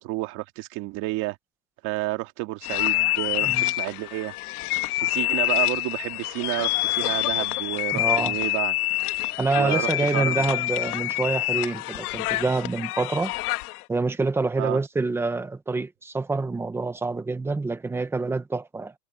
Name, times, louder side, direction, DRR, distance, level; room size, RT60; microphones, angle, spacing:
voice 1, 0.0-1.4 1.8-4.3 4.9-8.8 9.5-10.5 14.6-14.8, right 20 dB, 40° right, 2.1 m, -30 dB
sound 1, 2.6-13.8, left 19 dB, 65° left, 1.3 m, -26 dB
voice 2, 7.9-8.4 9.4-13.3 13.9-18.9, right 3 dB, 5° right, 0.8 m, -26 dB
supercardioid pair, 170°, 48 cm